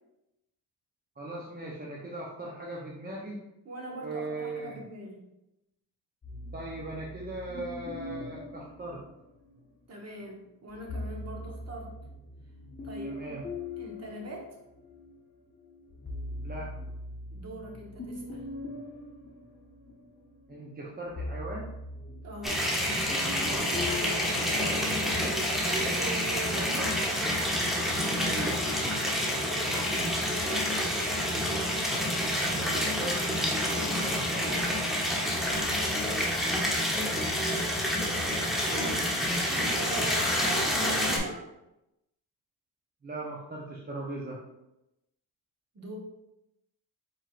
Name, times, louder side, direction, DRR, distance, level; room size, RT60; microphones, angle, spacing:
voice 1, 1.2-3.5 4.0-4.8 6.5-9.0 13.0-13.4 16.4-16.7 20.5-21.7 28.2-28.6 32.4-34.7 38.7-38.9 43.0-44.4, right 2 dB, 25° right, -3 dB, 0.7 m, -39 dB
voice 2, 3.6-5.3 9.9-12.0 12.8-13.3 13.8-14.6 17.3-18.4 22.2-22.7 23.5-27.0 29.8-30.6 35.6-36.0 37.9-38.3 38.7-39.0 39.5-41.5 45.7-46.0, right 1 dB, 40° right, -1 dB, 1.3 m, -41 dB
sound 1, 6.2-9.7 10.7-15.1 15.6-24.8, left 2 dB, 25° left, 1.2 m, -41 dB
sound 2, 22.4-41.2, equal, ahead, 0.9 m, -28 dB
4.5 x 4.5 x 2.5 m, 0.91 s
cardioid pair, 100°, 40 cm